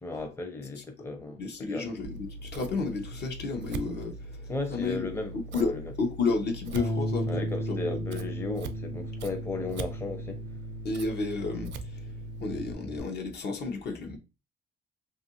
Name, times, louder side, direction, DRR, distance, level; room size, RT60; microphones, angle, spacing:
voice 1, 0.0-1.9 4.5-5.9 7.3-10.4, left 3 dB, 10° left, 0.6 m, -35 dB
voice 2, 1.3-5.1 5.3-8.0 10.8-12.1 12.4-14.2, left 4 dB, 55° left, 0.8 m, -32 dB
Scissors, 2.0-12.7, right 2 dB, 60° right, 0.4 m, -41 dB
Bass guitar, 6.8-13.0, equal, 90° left, 1.0 m, -36 dB
2.6 x 2.5 x 2.8 m
cardioid pair, 90°, 20 cm